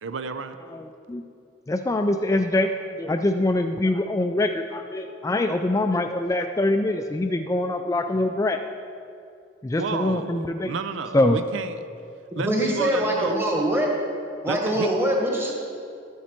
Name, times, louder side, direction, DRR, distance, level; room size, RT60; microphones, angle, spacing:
voice 1, 0.0-0.6 9.8-11.8 12.4-13.4 14.5-14.9, right 4 dB, 85° right, 10 dB, 0.5 m, -31 dB
voice 2, 0.7-1.2 1.7-2.7 3.0-8.6 9.6-10.7 11.1-11.4, left 2 dB, 15° left, 6 dB, 0.3 m, -24 dB
voice 3, 12.3-13.9 14.4-15.5, right 1 dB, 15° right, -1 dB, 1.5 m, -23 dB
11.5 x 9.4 x 4.4 m, 2.5 s
head